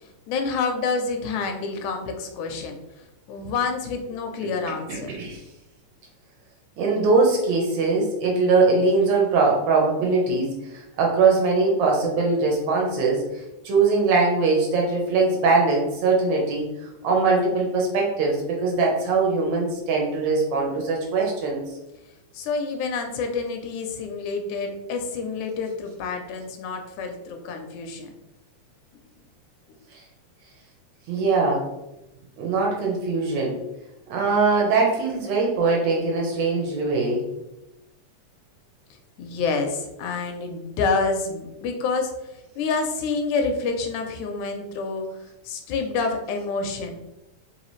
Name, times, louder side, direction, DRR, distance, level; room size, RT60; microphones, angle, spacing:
voice 1, 0.0-2.8 3.3-5.2 22.3-28.1 39.2-42.2 42.6-45.1 45.4-46.9, left 4 dB, 80° left, 4 dB, 1.9 m, -28 dB
voice 2, 4.9-5.4 6.8-21.6 31.1-31.7 32.4-33.6 34.1-37.3, right 3 dB, 70° right, -1 dB, 2.0 m, -22 dB
4.8 x 2.9 x 3.0 m, 0.94 s
omnidirectional pair, 3.5 m